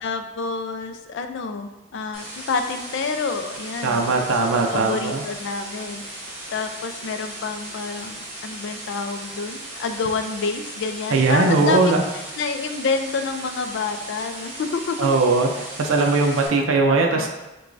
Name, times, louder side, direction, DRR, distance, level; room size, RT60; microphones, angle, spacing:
voice 1, 0.0-15.1 16.6-16.7 17.1-17.3, left 4 dB, 60° left, 7 dB, 0.3 m, -28 dB
sound 1, 2.1-16.5, right 1 dB, 30° right, 1.0 m, -37 dB
voice 2, 3.8-5.2 11.1-12.0 15.0-15.5 15.8-17.3, right 3 dB, 70° right, 2 dB, 0.5 m, -19 dB
6.0 x 2.3 x 2.5 m, 1.0 s
head